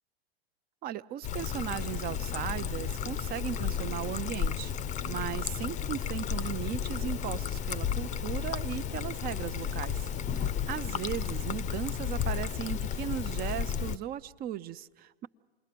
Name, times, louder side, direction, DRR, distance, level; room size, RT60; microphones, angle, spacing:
voice 1, 0.8-4.7 5.1-10.1 10.3-15.3, right 11 dB, 30° right, 14 dB, 0.7 m, -37 dB
Trickle dribble, 1.2-14.0, left 8 dB, 25° left, 0.7 m, -33 dB
28.0 x 21.0 x 6.8 m, 1.4 s
figure-of-eight pair, 95°, 31 cm